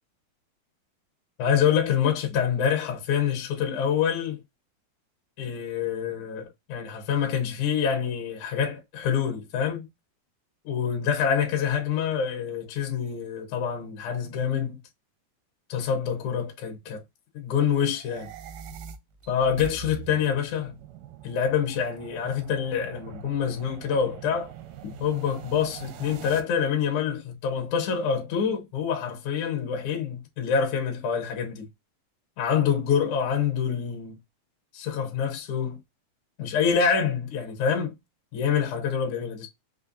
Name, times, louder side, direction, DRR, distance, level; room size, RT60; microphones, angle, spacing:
voice 1, 1.4-4.4 5.4-9.9 10.6-14.8 15.7-17.0 17.3-18.3 19.3-20.7 21.2-24.5 24.8-31.7 32.4-34.2 34.7-35.8 36.4-37.9 38.3-39.5, left 7 dB, 65° left, 2.1 m, -26 dB
sound 1, 17.9-26.4, right 9 dB, 85° right, 1.9 m, -43 dB
5.7 x 2.2 x 2.6 m
omnidirectional pair, 4.2 m